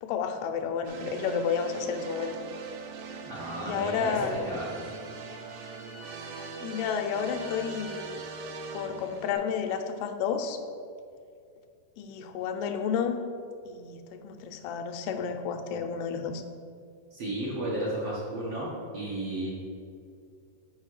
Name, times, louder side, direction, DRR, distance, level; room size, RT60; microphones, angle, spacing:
voice 1, 0.0-2.4 3.6-4.4 6.3-8.2 8.7-10.6 12.0-13.2 13.7-16.4, left 6 dB, 85° left, 6 dB, 2.6 m, -31 dB
sound 1, 0.8-9.3, right 4 dB, 90° right, 1.7 m, -41 dB
Bowed string instrument, 3.1-8.3, left 2 dB, 25° right, 0.8 m, -53 dB
voice 2, 3.2-4.8 17.1-19.5, right 1 dB, 75° right, -7 dB, 1.4 m, -33 dB
6.3 x 4.7 x 6.4 m, 2.4 s
omnidirectional pair, 4.5 m